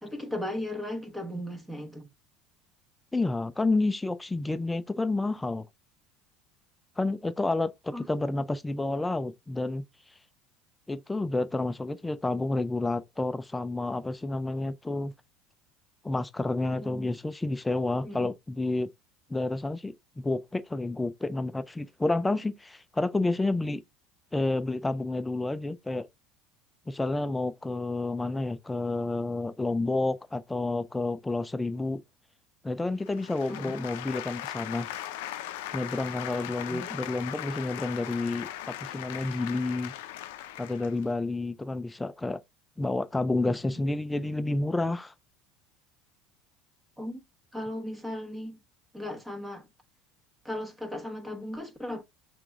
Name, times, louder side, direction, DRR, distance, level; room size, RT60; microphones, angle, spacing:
voice 1, 0.0-2.1 7.9-8.3 16.8-17.1 18.0-18.3 33.5-33.8 36.7-37.0 43.4-43.8 47.0-47.2 47.5-48.6 48.9-49.7 50.4-52.0, left 1 dB, 5° right, 1.2 m, -37 dB
voice 2, 3.1-5.7 7.0-9.8 10.9-15.1 16.0-18.9 19.3-23.8 24.3-26.1 26.9-32.0 32.6-34.9 35.7-39.9 40.6-42.4 42.8-45.1, left 2 dB, 10° left, 0.4 m, -30 dB
sound 1, 33.0-41.1, left 13 dB, 80° left, 0.4 m, -39 dB
5.9 x 3.5 x 2.5 m
supercardioid pair, 100°, 0 cm